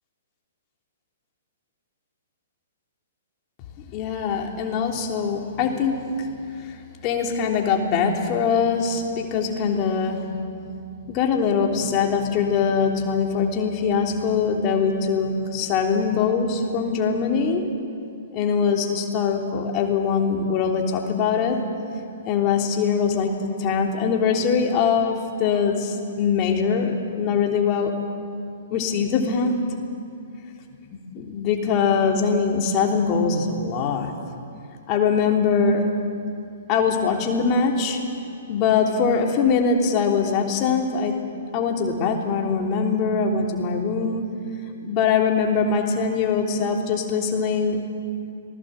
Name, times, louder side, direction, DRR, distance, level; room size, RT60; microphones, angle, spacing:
voice 1, 3.9-6.3 6.6-6.8 7.0-10.2 11.0-17.6 18.3-21.6 22.2-27.9 28.7-29.5 30.9-34.1 34.9-35.8 36.7-38.0 38.5-41.2 41.5-44.3 44.8-47.8, left 5 dB, 30° left, 2 dB, 3.3 m, -22 dB
27.0 x 20.0 x 7.8 m, 2.6 s
figure-of-eight pair, 115°, 0 cm